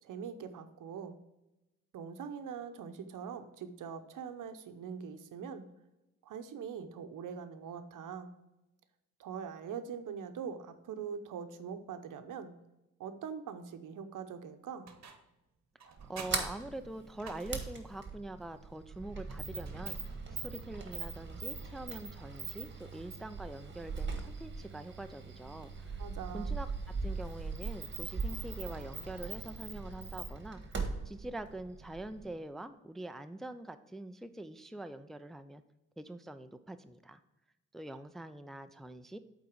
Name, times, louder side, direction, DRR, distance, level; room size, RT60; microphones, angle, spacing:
voice 1, 0.0-1.2 1.9-5.7 6.2-8.3 9.2-12.5 13.0-14.9 26.0-26.6, right 7 dB, 70° right, 9 dB, 0.8 m, -43 dB
sound 1, 14.9-15.4 15.8-17.9 19.6-20.5, right 6 dB, 55° right, 1.1 m, -51 dB
voice 2, 15.8-26.0 26.3-35.6 36.0-37.2 37.7-39.2, right 1 dB, ahead, 9 dB, 0.4 m, -44 dB
Sliding door, 16.0-32.3, right 4 dB, 35° right, 1.6 m, -40 dB
8.4 x 4.0 x 4.6 m, 0.97 s
cardioid pair, 65°, 32 cm